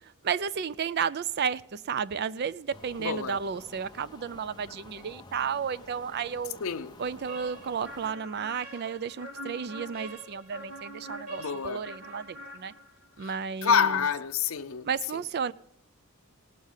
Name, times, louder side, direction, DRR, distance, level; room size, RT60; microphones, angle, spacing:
voice 1, 0.2-6.6 7.0-12.7 13.2-14.1 14.8-15.5, right 6 dB, 45° right, 0.4 m, -32 dB
sound 1, 2.7-8.1, left 2 dB, 20° left, 0.8 m, -51 dB
voice 2, 3.0-3.4 6.6-6.9 11.4-11.9 13.2-13.3 13.6-14.9, left 7 dB, 65° left, 0.6 m, -27 dB
sound 2, 7.3-13.1, right 1 dB, 75° right, 2.9 m, -44 dB
18.5 x 6.5 x 5.5 m
head